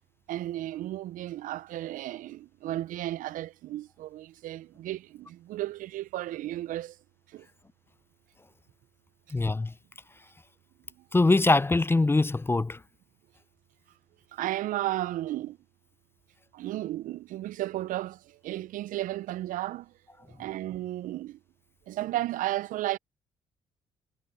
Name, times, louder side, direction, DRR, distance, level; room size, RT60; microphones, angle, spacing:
voice 1, 0.3-7.0 7.3-7.5 14.3-15.6 16.5-19.9 20.3-21.4 21.9-23.0, right 15 dB, 65° right, 0.7 m, -34 dB
voice 2, 9.3-9.7 11.1-12.8, left 2 dB, 15° left, 0.5 m, -23 dB
hypercardioid pair, 50°, 15 cm